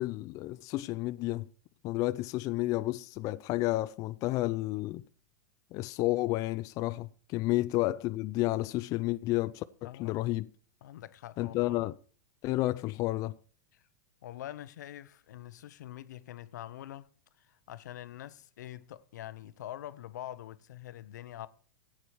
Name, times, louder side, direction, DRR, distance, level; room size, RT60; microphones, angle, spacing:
voice 1, 0.0-1.5 1.8-5.0 5.7-10.5 11.4-11.9 12.4-13.4, left 18 dB, 35° left, 0.4 m, -31 dB
voice 2, 9.8-10.2 10.8-11.8 13.7-13.8 14.2-17.1 17.4-21.5, left 12 dB, 75° left, 0.8 m, -45 dB
14.0 x 8.8 x 4.6 m
hypercardioid pair, 130°, 10 cm